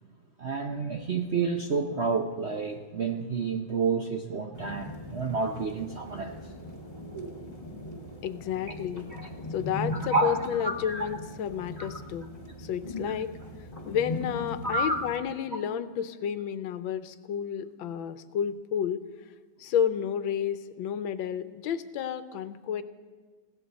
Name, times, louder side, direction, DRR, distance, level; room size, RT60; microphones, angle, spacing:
voice 1, 0.4-6.5 8.7-8.8 9.1-9.3 9.9-11.1 11.7-12.0 14.6-15.0, right 4 dB, 60° right, 3 dB, 0.7 m, -30 dB
sound 1, 4.5-15.2, left 2 dB, 30° left, 1.9 m, -39 dB
voice 2, 8.2-9.1 9.5-12.3 12.6-13.3 13.8-19.0 19.6-22.8, left 8 dB, 85° left, 12 dB, 1.5 m, -31 dB
20.5 x 16.0 x 4.1 m, 1.5 s
omnidirectional pair, 2.1 m